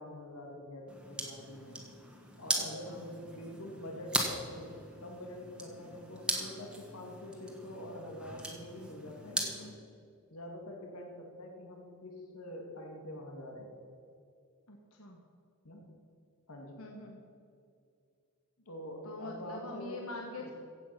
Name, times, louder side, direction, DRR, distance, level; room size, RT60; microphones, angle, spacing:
voice 1, 0.0-1.8 2.4-9.8 10.3-13.7 15.6-15.9 16.5-16.8 18.7-20.1 20.4-20.5, left 1 dB, 90° left, 1 dB, 2.3 m, -45 dB
sound 1, 0.9-9.7, right 1 dB, 5° right, 1.6 m, -39 dB
voice 2, 2.5-3.0 14.7-15.2 16.8-17.2 19.0-20.5, left 2 dB, 70° left, 1 dB, 1.3 m, -44 dB
15.5 x 8.4 x 5.8 m, 2.4 s
head